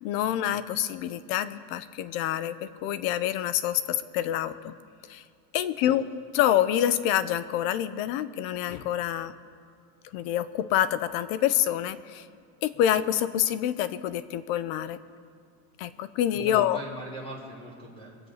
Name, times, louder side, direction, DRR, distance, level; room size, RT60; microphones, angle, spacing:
voice 1, 0.0-4.7 5.1-5.2 5.5-6.0 6.3-9.3 10.1-12.2 12.6-15.0 15.8-16.8, left 11 dB, 65° left, 14 dB, 0.9 m, -27 dB
voice 2, 16.3-18.2, right 1 dB, 10° left, -3 dB, 3.9 m, -41 dB
23.5 x 8.1 x 5.7 m, 2.3 s
supercardioid pair, 135°, 45 cm